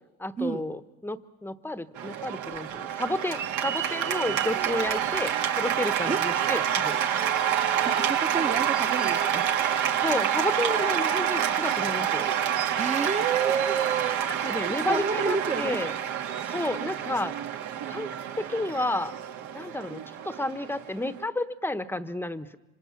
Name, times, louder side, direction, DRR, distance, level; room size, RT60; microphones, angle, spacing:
voice 1, 0.2-7.0 10.0-12.3 14.4-16.0 16.4-17.3 17.9-18.1 18.5-19.1 19.5-22.6, left 1 dB, 5° left, 12 dB, 1.0 m, -31 dB
Cheering / Applause, 2.0-21.2, right 9 dB, 65° right, 1.8 m, -28 dB
voice 2, 7.8-9.5 12.5-14.6 14.9-15.8, right 5 dB, 20° right, 10 dB, 1.1 m, -30 dB
26.5 x 26.0 x 5.9 m, 1.1 s
supercardioid pair, 95°, 31 cm